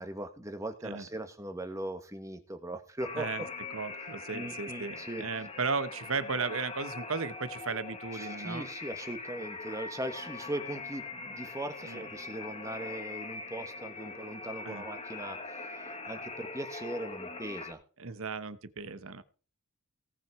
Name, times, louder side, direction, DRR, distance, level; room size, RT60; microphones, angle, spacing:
voice 1, 0.0-3.3 4.3-5.3 8.2-17.8, right 1 dB, 15° right, 8 dB, 1.4 m, -39 dB
sound 1, 3.0-17.7, left 3 dB, 25° left, 1.3 m, -42 dB
voice 2, 3.1-3.4 3.7-8.7 11.8-12.0 14.6-14.8 18.0-19.2, right 4 dB, 65° right, 14 dB, 1.0 m, -35 dB
18.0 x 6.0 x 4.7 m, 0.39 s
head